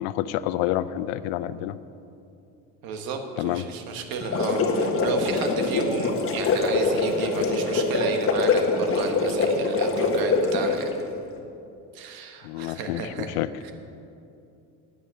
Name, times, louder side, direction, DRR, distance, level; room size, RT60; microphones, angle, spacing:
voice 1, 0.0-1.7 3.4-3.6 12.4-13.5, left 13 dB, 80° left, 15 dB, 0.6 m, -28 dB
voice 2, 2.8-10.9 11.9-13.3 13.6-13.7, right 4 dB, 70° right, 5 dB, 1.5 m, -32 dB
sound 1, 4.1-10.9, left 3 dB, 35° left, 1.4 m, -24 dB
9.7 x 9.1 x 6.9 m, 2.7 s
cardioid pair, 120°, 37 cm